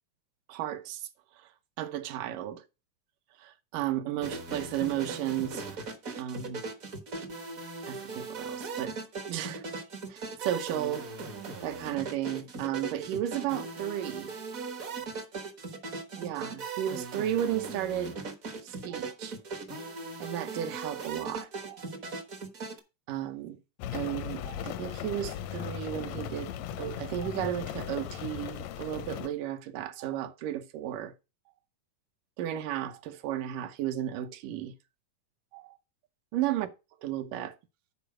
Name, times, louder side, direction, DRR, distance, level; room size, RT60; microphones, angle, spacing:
voice 1, 0.5-1.1 1.8-2.6 3.4-5.8 6.2-6.6 7.9-9.0 9.3-9.6 10.1-11.1 11.6-14.3 16.2-18.1 18.6-19.4 20.2-21.9 23.1-23.6 23.9-26.5 26.8-31.1 32.4-34.7 35.5-35.8 36.3-36.7 37.0-37.6, right 11 dB, 80° right, 2.4 m, -34 dB
sound 1, 4.2-22.8, right 4 dB, 60° right, 0.8 m, -39 dB
Rain, 23.8-29.3, left 9 dB, 80° left, 1.5 m, -37 dB
10.0 x 4.2 x 6.2 m
omnidirectional pair, 3.8 m